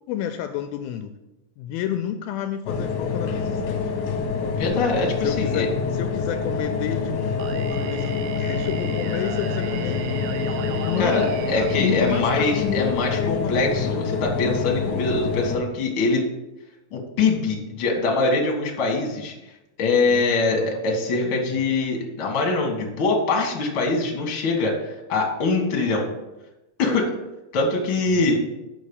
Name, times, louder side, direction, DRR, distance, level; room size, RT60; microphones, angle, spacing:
voice 1, 0.1-1.1 1.6-3.9 4.4-4.6 5.2-10.0 10.5-14.0 20.1-20.8 21.2-21.3 28.1-28.4, left 10 dB, 80° left, 7 dB, 2.3 m, -31 dB
sound 1, 2.7-15.6, left 5 dB, 65° left, 2.1 m, -26 dB
voice 2, 4.5-5.7 11.0-16.2 16.9-19.3 19.8-26.1 26.8-27.1 27.5-28.4, left 3 dB, 45° left, 0 dB, 1.9 m, -23 dB
Singing, 7.4-13.3, right 10 dB, 85° right, 2.0 m, -36 dB
6.5 x 6.3 x 7.0 m, 0.99 s
omnidirectional pair, 4.4 m